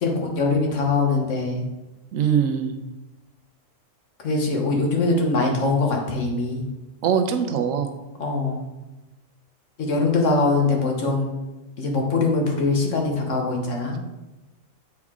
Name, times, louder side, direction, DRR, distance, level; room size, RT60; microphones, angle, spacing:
voice 1, 0.0-1.6 4.2-6.6 8.2-8.6 9.8-11.4 11.8-14.0, left 3 dB, 70° left, 1 dB, 1.5 m, -22 dB
voice 2, 2.1-2.7 7.0-7.9, right 7 dB, 90° right, 6 dB, 1.1 m, -22 dB
7.2 x 4.8 x 3.6 m, 1.1 s
omnidirectional pair, 1.3 m